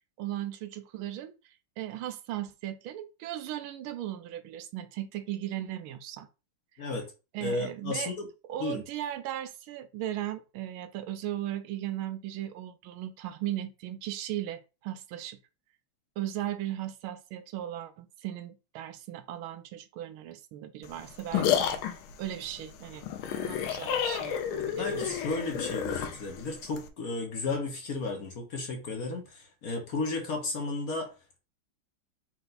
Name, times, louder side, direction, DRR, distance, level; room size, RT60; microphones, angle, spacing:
voice 1, 0.2-6.3 6.7-6.8 7.3-8.1 8.5-15.4 16.2-21.7 22.2-25.1, right 13 dB, 85° right, 1.4 m, -37 dB
voice 2, 7.4-8.3 8.6-8.8 24.8-31.1, left 3 dB, 50° left, 1.3 m, -33 dB
sound 1, 20.8-26.9, left 9 dB, 85° left, 1.5 m, -31 dB
4.5 x 2.6 x 4.0 m
omnidirectional pair, 2.2 m